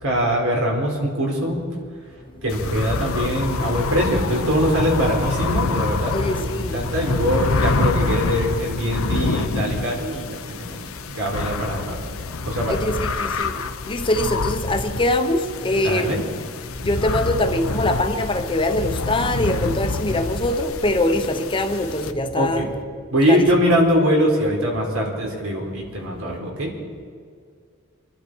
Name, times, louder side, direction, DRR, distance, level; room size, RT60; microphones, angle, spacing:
voice 1, 0.0-1.6 2.4-10.8 11.1-12.0 12.5-12.8 15.8-16.2 22.4-22.7 23.1-26.7, equal, 85° right, 4.3 m, -22 dB
sound 1, 2.5-22.1, left 3 dB, 80° left, 0.8 m, -27 dB
voice 2, 6.1-6.8 12.7-13.6 13.9-16.2 16.8-22.7 23.3-23.4, left 1 dB, 25° left, 0.9 m, -23 dB
25.5 x 12.0 x 4.6 m
head